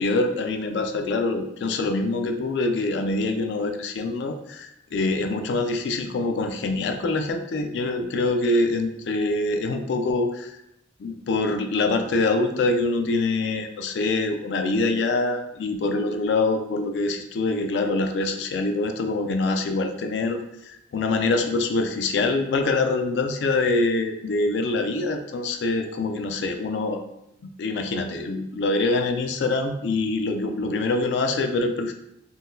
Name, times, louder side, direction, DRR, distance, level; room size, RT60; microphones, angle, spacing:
voice 1, 0.0-10.6 11.0-27.0 27.6-31.9, left 3 dB, 75° left, 5 dB, 0.3 m, -25 dB
3.7 x 2.1 x 2.6 m, 0.80 s
head